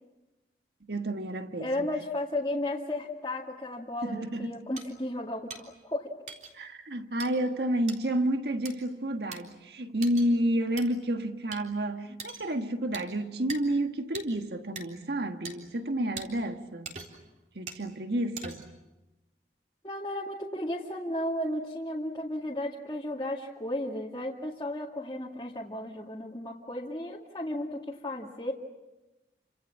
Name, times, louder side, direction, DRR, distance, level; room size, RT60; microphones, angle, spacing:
voice 1, 0.9-1.9 4.0-4.6 6.5-17.0 17.5-18.6, right 1 dB, 65° right, 1.5 m, -30 dB
voice 2, 1.6-6.1 19.8-28.5, left 1 dB, 25° left, 2.2 m, -34 dB
sound 1, 4.8-4.9 5.5-5.6 6.3-6.5 7.2-7.3 7.9-8.0 8.6-8.7 9.3-9.4 10.0-10.3 10.8-10.9 11.5-11.6 12.2-12.5 12.9-13.1 13.5-13.6 14.1-14.3 14.8-14.9 15.4-15.5 16.2-16.3 16.8-17.2 17.7-17.8 18.4-18.8, right 4 dB, 40° right, 3.7 m, -41 dB
29.5 x 26.0 x 7.4 m
head